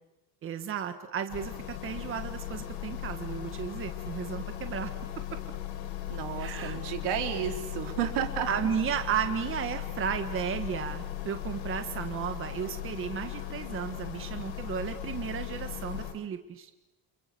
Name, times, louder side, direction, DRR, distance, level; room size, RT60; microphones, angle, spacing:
voice 1, 0.4-4.9 6.4-6.8 8.5-16.7, right 8 dB, 30° right, 7 dB, 1.5 m, -34 dB
sound 1, 1.3-16.1, left 12 dB, 80° left, 5.6 m, -38 dB
voice 2, 6.1-8.5, right 10 dB, 80° right, 5 dB, 4.1 m, -32 dB
29.5 x 28.0 x 7.0 m, 0.98 s
cardioid pair, 180°, 40 cm